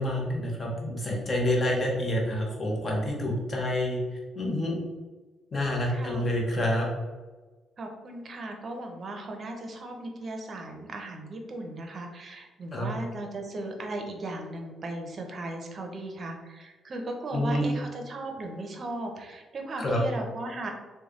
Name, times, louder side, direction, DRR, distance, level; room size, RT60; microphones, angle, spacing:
voice 1, 0.0-4.0 4.3-4.8 5.5-6.9 12.7-12.9 17.3-17.7 19.8-20.0, left 1 dB, 40° left, -1 dB, 1.0 m, -28 dB
voice 2, 5.9-6.3 7.8-20.7, right 2 dB, 45° right, 3 dB, 0.7 m, -37 dB
3.3 x 2.3 x 3.6 m, 1.3 s
cardioid pair, 90°, 0 cm